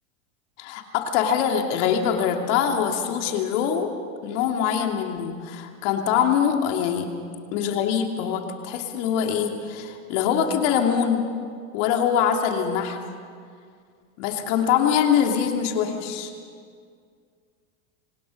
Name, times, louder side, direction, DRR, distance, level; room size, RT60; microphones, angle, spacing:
voice 1, 0.6-3.9 4.2-7.1 7.5-11.3 11.7-13.0 14.2-16.3, left 8 dB, 60° left, 3 dB, 2.7 m, -23 dB
25.5 x 17.5 x 6.5 m, 2.2 s
supercardioid pair, 135°, 41 cm